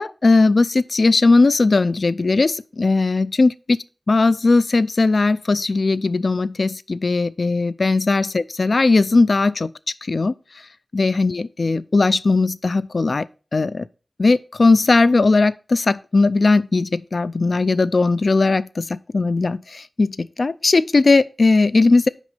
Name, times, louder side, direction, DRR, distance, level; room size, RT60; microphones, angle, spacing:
voice 1, 0.0-3.8 4.1-9.7 10.0-10.3 10.9-13.3 13.5-13.8 14.2-22.1, left 3 dB, 60° left, 0.3 m, -18 dB
6.0 x 5.2 x 5.6 m
wide cardioid pair, 90°, 0 cm